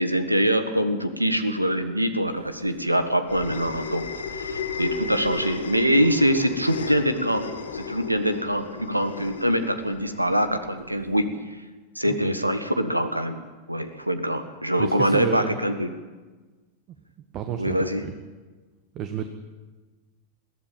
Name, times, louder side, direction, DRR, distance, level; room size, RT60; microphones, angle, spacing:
voice 1, 0.0-4.1 4.3-11.3 11.9-13.4 13.7-15.9 17.6-18.0, equal, 85° right, 10 dB, 1.6 m, -24 dB
sound 1, 2.4-11.2, left 4 dB, 70° left, 1.9 m, -34 dB
voice 2, 14.8-15.6 17.3-18.1 18.9-19.3, right 9 dB, 35° right, 7 dB, 1.5 m, -30 dB
22.0 x 16.0 x 8.8 m, 1.3 s
figure-of-eight pair, 90°, 0 cm